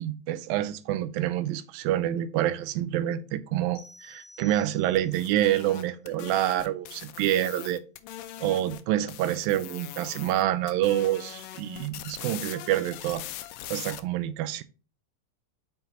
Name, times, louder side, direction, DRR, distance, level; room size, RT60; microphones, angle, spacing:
voice 1, 0.0-7.8 8.4-13.2 13.7-14.6, right 13 dB, 85° right, 2.5 m, -27 dB
sound 1, 3.8-5.3, left 1 dB, 45° left, 3.7 m, -51 dB
sound 2, 5.0-8.8 9.1-10.4 10.7-14.0, left 13 dB, 85° left, 2.3 m, -41 dB
7.8 x 5.5 x 2.9 m
omnidirectional pair, 4.0 m